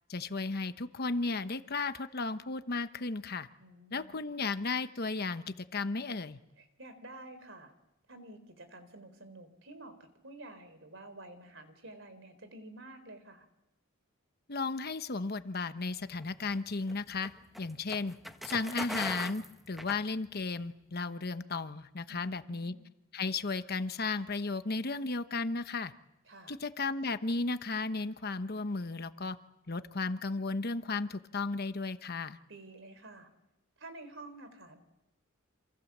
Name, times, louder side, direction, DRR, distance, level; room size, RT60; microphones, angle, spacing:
voice 1, 0.1-3.5 3.9-5.4 5.7-6.4 14.5-17.3 17.6-18.2 18.4-22.7 23.1-25.9 26.5-29.4 29.7-32.4, left 3 dB, 50° left, 11 dB, 1.1 m, -34 dB
voice 2, 3.6-4.2 6.6-7.7 8.1-13.5 22.1-22.8 26.3-26.6 32.5-33.3 33.8-34.8, right 2 dB, 65° right, 10 dB, 3.9 m, -50 dB
sound 1, 16.2-20.6, equal, ahead, 1.3 m, -42 dB
28.0 x 27.0 x 7.4 m, 0.94 s
head